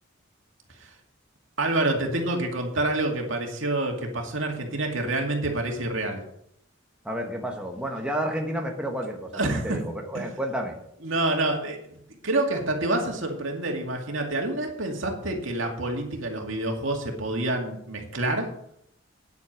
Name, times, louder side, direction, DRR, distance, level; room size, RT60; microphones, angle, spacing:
voice 1, 1.6-6.2 9.3-9.8 10.1-10.3 11.0-18.5, right 2 dB, 75° right, 2 dB, 2.3 m, -27 dB
voice 2, 7.0-10.7, equal, 5° right, 1 dB, 1.2 m, -31 dB
9.8 x 8.4 x 6.1 m, 0.74 s
head